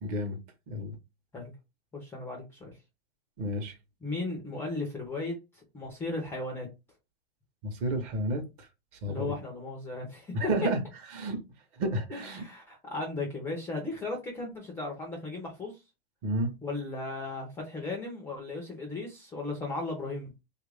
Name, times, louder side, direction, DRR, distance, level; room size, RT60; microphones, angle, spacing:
voice 1, 0.0-0.4 0.7-0.9 3.4-3.7 7.6-8.4 9.0-9.3 10.3-10.8 11.1-11.4 11.8-12.4 16.2-16.5, right 1 dB, 35° right, 0.8 m, -30 dB
voice 2, 1.9-2.7 4.0-6.7 9.1-10.4 12.1-15.7 16.6-20.3, left 2 dB, 5° left, 0.4 m, -36 dB
3.0 x 2.4 x 3.2 m
supercardioid pair, 155°, 32 cm